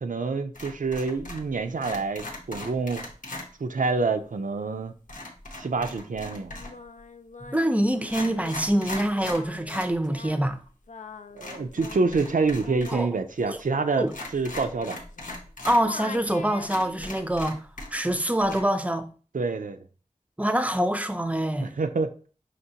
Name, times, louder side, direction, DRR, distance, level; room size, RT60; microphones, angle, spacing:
voice 1, 0.0-3.1 3.6-4.9 5.6-6.5 11.3-14.1 14.3-15.0 19.3-19.8 21.6-22.1, right 4 dB, 85° right, 0.4 m, -27 dB
sound 1, 0.5-1.5 1.8-3.5 5.1-6.8 7.5-7.6 8.0-9.9 10.2-10.3 11.4-13.0 13.3-13.4 14.1-15.8 16.3-16.4 16.6-18.1 18.4-18.6, left 2 dB, 90° left, 1.0 m, -39 dB
Singing, 6.5-15.5 15.8-17.2, left 4 dB, 70° left, 0.4 m, -44 dB
voice 2, 7.5-10.6 12.9-13.1 13.5-13.6 14.0-14.1 15.6-17.6 17.9-19.1 20.4-21.7, right 1 dB, 10° right, 0.5 m, -25 dB
5.8 x 2.9 x 2.8 m
wide cardioid pair, 50°, 13 cm